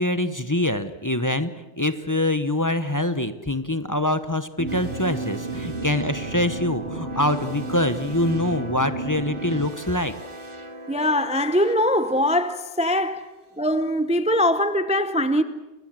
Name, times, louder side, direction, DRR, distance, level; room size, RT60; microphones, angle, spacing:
voice 1, 0.0-1.5 1.8-10.1, left 1 dB, 20° left, 0.9 m, -24 dB
sound 1, 4.6-9.7, right 3 dB, 65° right, 1.6 m, -33 dB
sound 2, 4.7-13.6, right 1 dB, 25° right, 1.5 m, -40 dB
voice 2, 10.9-13.3 13.6-15.4, left 1 dB, 5° right, 0.7 m, -22 dB
29.0 x 21.0 x 7.6 m
omnidirectional pair, 1.2 m